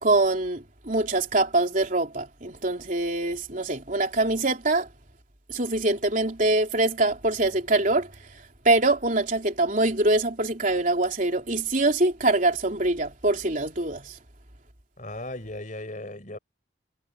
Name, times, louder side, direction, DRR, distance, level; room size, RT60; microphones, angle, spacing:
voice 1, 0.0-4.9 5.5-8.1 8.7-14.1, right 2 dB, 40° right, 3.7 m, -24 dB
voice 2, 15.0-16.4, left 1 dB, 40° left, 5.6 m, -36 dB
head